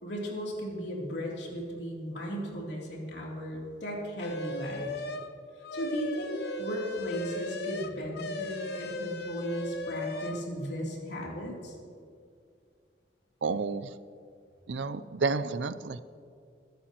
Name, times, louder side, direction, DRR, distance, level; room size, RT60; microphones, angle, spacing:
voice 1, 0.0-5.0 5.7-6.3 6.6-11.7, equal, 80° left, -3 dB, 3.1 m, -36 dB
sound 1, 4.2-5.3 5.6-10.4, left 2 dB, 65° left, 0.8 m, -36 dB
voice 2, 13.4-13.9 14.7-16.0, right 4 dB, 85° right, 14 dB, 0.5 m, -30 dB
22.5 x 11.5 x 3.0 m, 2.3 s
head